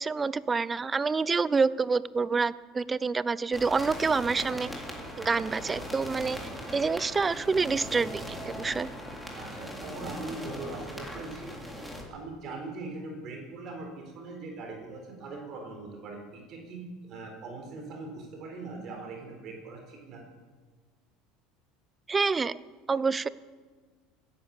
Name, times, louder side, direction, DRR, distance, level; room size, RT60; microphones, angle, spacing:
voice 1, 0.0-4.7 5.2-6.4 6.7-8.9 22.1-22.6 22.9-23.3, right 4 dB, 20° right, 18 dB, 0.6 m, -27 dB
sound 1, 3.5-12.0, equal, ahead, 3.4 m, -40 dB
voice 2, 9.2-11.6 12.1-20.2, right 3 dB, 50° right, 2 dB, 4.0 m, -41 dB
16.5 x 10.5 x 7.2 m, 1.4 s
supercardioid pair, 105°, 0 cm